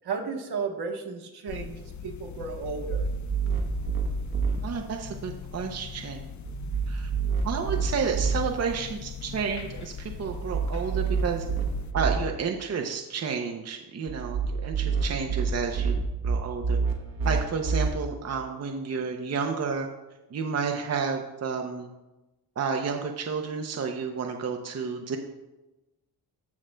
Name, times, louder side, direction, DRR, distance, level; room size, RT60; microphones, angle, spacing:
voice 1, 0.0-3.1, right 5 dB, 90° right, 4 dB, 1.2 m, -34 dB
sound 1, 1.5-11.9, left 6 dB, 50° left, 0.5 m, -40 dB
sound 2, 2.6-4.6 6.5-8.4 10.3-12.2 14.1-17.9, right 5 dB, 65° right, 1.1 m, -28 dB
voice 2, 4.6-6.3 6.9-7.1 7.4-11.5 11.9-16.0 16.2-16.8 17.2-19.9 20.3-21.9 22.6-25.2, right 5 dB, 45° right, 3 dB, 0.6 m, -31 dB
14.5 x 6.2 x 2.2 m, 1.0 s
wide cardioid pair, 145°, 38 cm